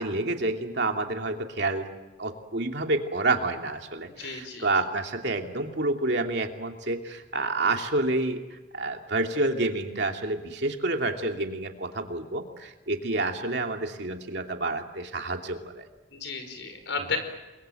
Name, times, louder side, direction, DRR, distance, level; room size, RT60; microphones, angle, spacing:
voice 1, 0.0-1.9 2.2-15.8, right 2 dB, 60° right, 3 dB, 2.7 m, -29 dB
voice 2, 4.2-4.7 16.1-17.2, left 4 dB, 75° left, 7 dB, 4.9 m, -33 dB
29.0 x 22.5 x 7.9 m, 1.1 s
head